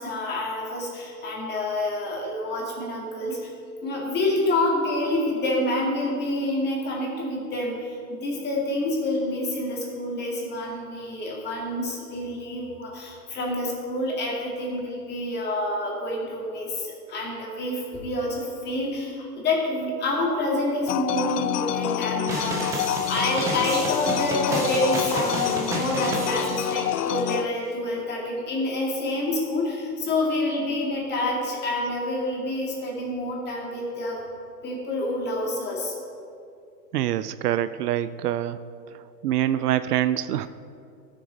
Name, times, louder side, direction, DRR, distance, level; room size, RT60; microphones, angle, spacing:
voice 1, 0.0-3.5 3.8-34.2 34.6-35.9, left 1 dB, 20° left, -3 dB, 2.2 m, -28 dB
sound 1, 20.9-27.5, left 12 dB, 75° left, 0.6 m, -28 dB
sound 2, 22.3-27.2, right 2 dB, 5° right, 0.4 m, -32 dB
voice 2, 36.9-38.6 39.2-40.5, right 12 dB, 70° right, 13 dB, 0.5 m, -25 dB
14.5 x 6.4 x 4.0 m, 2.5 s
hypercardioid pair, 135°, 48 cm